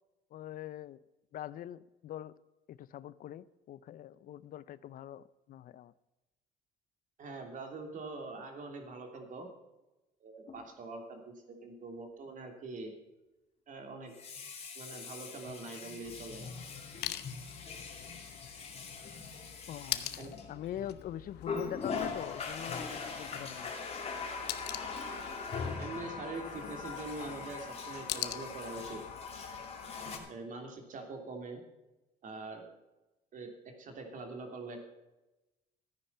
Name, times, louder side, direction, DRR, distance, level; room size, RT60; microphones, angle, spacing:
voice 1, 0.3-1.0 1.3-2.3 2.7-5.9 19.7-20.1 20.5-23.7, left 11 dB, 55° left, 18 dB, 0.5 m, -43 dB
voice 2, 7.2-9.5 10.2-12.9 13.7-14.1 14.7-16.5 20.2-20.3 25.8-29.0 30.3-31.6 32.2-32.7 33.3-34.8, right 3 dB, 50° right, 4 dB, 3.0 m, -44 dB
Water tap faucet, 10.5-10.6 14.0-20.9 21.4-30.2, left 5 dB, 40° left, 2.5 m, -41 dB
sound 1, 16.0-30.3, left 13 dB, 75° left, 0.9 m, -45 dB
sound 2, 22.6-28.3, right 2 dB, 25° right, 3.9 m, -54 dB
13.5 x 9.9 x 5.7 m, 1.0 s
cardioid pair, 110°, 17 cm